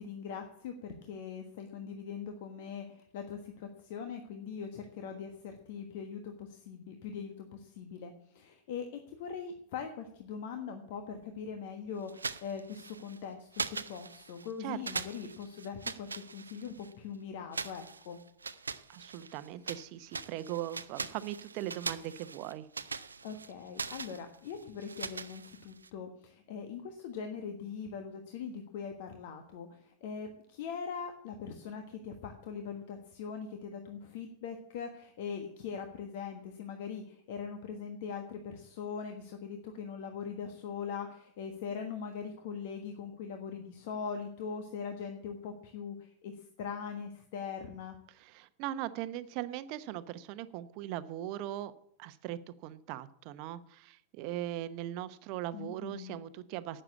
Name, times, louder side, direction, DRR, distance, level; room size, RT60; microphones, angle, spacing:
voice 1, 0.0-18.2 23.2-47.9 55.5-56.2, left 6 dB, 50° left, 6 dB, 1.3 m, -41 dB
sound 1, 12.1-13.2 13.5-14.5 14.8-16.9 17.5-19.8 20.1-25.9, right 4 dB, 75° right, 0.6 m, -41 dB
voice 2, 18.9-22.7 48.1-51.7 52.0-56.8, right 13 dB, 45° right, 13 dB, 0.9 m, -39 dB
12.0 x 8.8 x 8.4 m, 0.71 s
figure-of-eight pair, 90°, 0 cm